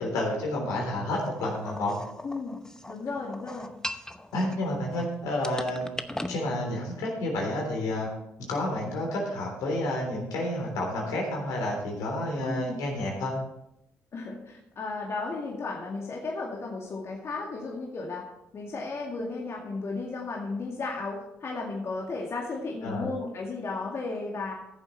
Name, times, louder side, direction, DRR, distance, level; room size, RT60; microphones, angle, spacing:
voice 1, 0.0-1.9 4.3-5.9 6.3-8.1 8.5-13.4 22.8-23.1, left 1 dB, 80° left, 0 dB, 3.5 m, -30 dB
sound 1, 1.3-5.0 5.4-6.4, left 1 dB, 10° left, 0.8 m, -39 dB
voice 2, 2.2-2.6 2.9-3.7 12.4-12.8 14.1-18.2 18.5-24.5, left 3 dB, 50° left, -2 dB, 2.1 m, -34 dB
14.0 x 7.4 x 4.2 m, 0.84 s
supercardioid pair, 60°, 6 cm